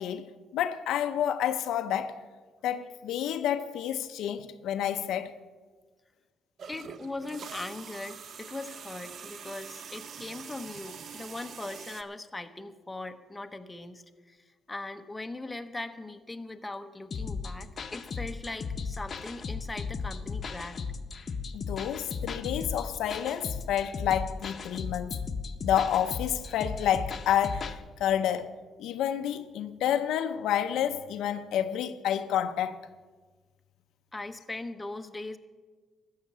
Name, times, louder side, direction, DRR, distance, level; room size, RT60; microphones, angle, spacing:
voice 1, 0.0-2.2 2.6-5.3 21.5-25.2 25.6-28.5 28.8-32.9, left 10 dB, 85° left, 0.6 m, -29 dB
sound 1, 6.6-12.0, right 6 dB, 60° right, 0.6 m, -44 dB
voice 2, 6.7-20.8 34.1-35.4, left 2 dB, 15° left, 0.8 m, -40 dB
sound 2, 17.1-27.8, left 5 dB, 45° left, 0.8 m, -36 dB
13.5 x 6.5 x 8.7 m
cardioid pair, 90°, 0 cm